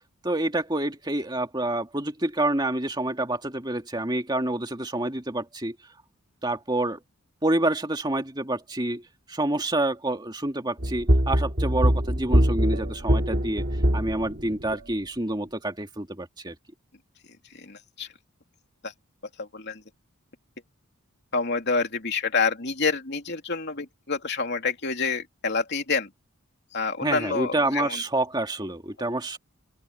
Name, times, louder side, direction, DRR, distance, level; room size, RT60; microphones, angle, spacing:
voice 1, 0.2-5.8 6.4-7.0 7.4-9.0 9.3-13.7 13.9-16.6 27.0-29.4, right 1 dB, 20° right, 2.3 m, -28 dB
sound 1, 10.8-14.9, equal, 45° right, 3.1 m, -23 dB
voice 2, 17.5-18.1 18.8-18.9 19.4-19.8 21.3-26.1 26.7-28.0, left 4 dB, 50° left, 3.2 m, -28 dB
open air
head